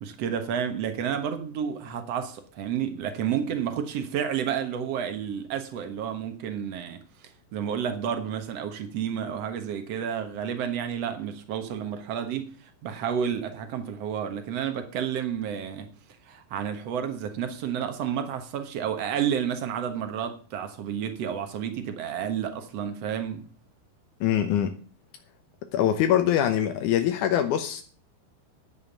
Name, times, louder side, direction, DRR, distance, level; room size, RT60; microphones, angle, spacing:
voice 1, 0.0-15.9 16.2-23.5, right 8 dB, 80° right, 1.4 m, -31 dB
voice 2, 24.2-24.8 25.7-27.8, left 10 dB, 75° left, 1.8 m, -23 dB
11.0 x 7.3 x 7.2 m
omnidirectional pair, 4.8 m